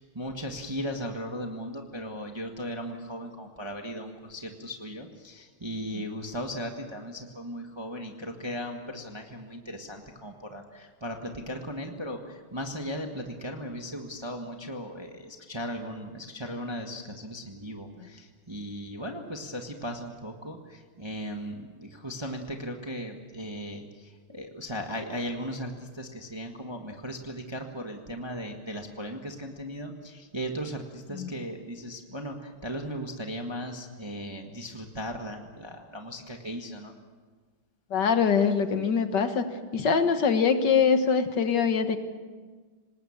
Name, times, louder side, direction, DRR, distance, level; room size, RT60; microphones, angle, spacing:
voice 1, 0.0-36.9, equal, 15° right, 3 dB, 1.3 m, -37 dB
voice 2, 37.9-39.5 39.7-42.0, left 6 dB, 55° left, 8 dB, 1.8 m, -23 dB
26.0 x 19.5 x 7.3 m, 1.4 s
omnidirectional pair, 2.3 m